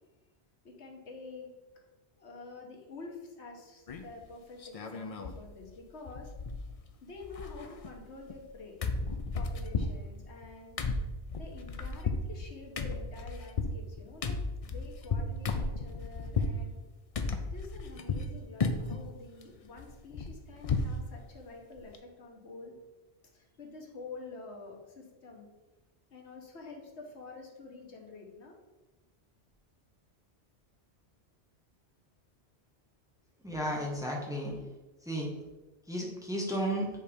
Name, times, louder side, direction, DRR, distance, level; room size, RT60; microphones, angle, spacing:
voice 1, 0.6-1.5 2.1-6.3 7.0-8.8 9.3-10.8 11.4-16.7 17.5-22.8 23.3-25.5 26.1-28.5, left 3 dB, 80° left, 0 dB, 1.4 m, -48 dB
sound 1, 3.9-4.2 4.6-5.4 5.7-5.8 6.1-6.9 7.2-8.5 8.8-16.6 17.1-18.3 18.6-19.0 19.4-21.0 21.3-21.4 21.8-22.0, left 3 dB, 45° left, 0.5 m, -34 dB
voice 2, 33.4-34.6 35.0-35.3 35.9-36.9, equal, 5° right, -2 dB, 1.0 m, -33 dB
7.4 x 3.4 x 5.0 m, 1.1 s
omnidirectional pair, 1.1 m